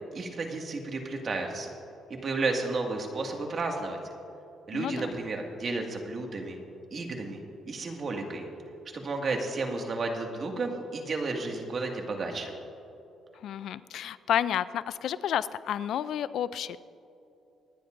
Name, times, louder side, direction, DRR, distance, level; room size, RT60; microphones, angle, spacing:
voice 1, 0.1-1.7 2.2-4.0 4.7-6.6 6.9-7.4 7.7-8.5 8.9-12.5, right 3 dB, 45° right, 2 dB, 1.9 m, -32 dB
voice 2, 4.7-5.2 13.4-16.8, left 10 dB, 75° left, 15 dB, 0.4 m, -31 dB
26.0 x 10.0 x 2.6 m, 2.7 s
cardioid pair, 90°, 0 cm